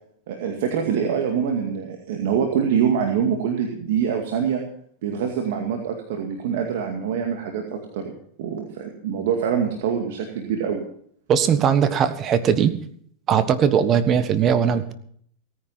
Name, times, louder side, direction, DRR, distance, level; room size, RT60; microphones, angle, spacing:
voice 1, 0.3-4.6 5.0-8.1 8.4-10.8, right 7 dB, 70° right, 3 dB, 2.3 m, -25 dB
voice 2, 11.3-12.7 13.3-14.9, right 8 dB, 35° right, 12 dB, 1.4 m, -19 dB
17.5 x 10.0 x 5.8 m, 0.62 s
supercardioid pair, 125°, 0 cm